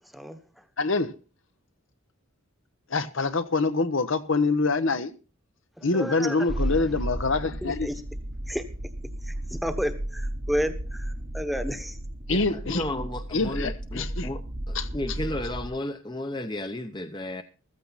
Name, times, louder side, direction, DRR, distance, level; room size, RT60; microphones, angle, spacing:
voice 1, 0.8-1.1 2.9-5.1 5.8-7.9 12.3-12.8 13.3-14.3 14.7-15.2, left 3 dB, 65° left, 1.0 m, -25 dB
voice 2, 5.8-6.5 7.6-7.9 8.5-8.7 9.2-12.0, equal, ahead, 1.1 m, -31 dB
sound 1, 6.5-15.7, right 1 dB, 40° right, 1.1 m, -34 dB
voice 3, 12.3-14.4 14.7-17.4, left 1 dB, 20° left, 0.8 m, -33 dB
14.5 x 14.0 x 4.1 m
head